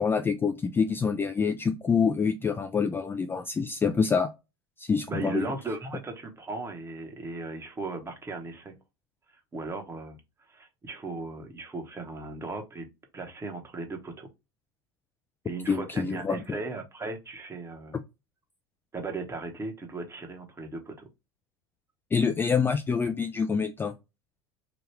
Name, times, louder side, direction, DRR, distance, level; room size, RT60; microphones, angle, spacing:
voice 1, 0.0-4.3 4.8-5.5 15.7-16.4 22.1-23.9, left 5 dB, 15° left, 0.3 m, -26 dB
voice 2, 5.1-8.7 9.5-10.2 10.5-12.9 13.1-14.3 15.4-18.0 18.9-21.1, right 3 dB, 20° right, 0.9 m, -37 dB
3.0 x 2.2 x 3.1 m
hypercardioid pair, 90°, 13 cm